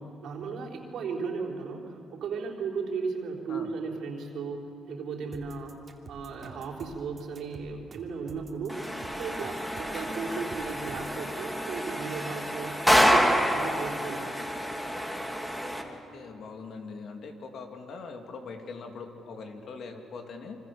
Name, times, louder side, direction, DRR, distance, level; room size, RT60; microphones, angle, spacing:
voice 1, 0.0-5.8 6.1-8.8 9.2-12.8 13.1-14.4, right 5 dB, 75° right, -1 dB, 4.0 m, -36 dB
sound 1, 5.3-11.2, right 4 dB, 45° right, 2.9 m, -48 dB
sound 2, 8.7-15.8, equal, 5° left, 2.5 m, -28 dB
voice 2, 15.6-20.6, left 4 dB, 65° left, 4 dB, 2.8 m, -42 dB
27.5 x 24.5 x 7.1 m, 2.7 s
cardioid pair, 90°, 0 cm